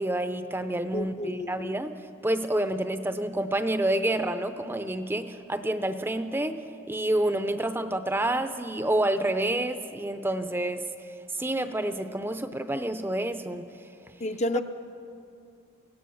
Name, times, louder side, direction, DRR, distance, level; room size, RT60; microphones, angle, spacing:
voice 1, 0.0-11.1 11.3-13.7, right 1 dB, 10° right, 9 dB, 0.6 m, -28 dB
voice 2, 0.9-1.7 14.2-14.6, equal, 35° left, 8 dB, 0.6 m, -30 dB
24.0 x 17.0 x 7.1 m, 2.5 s
head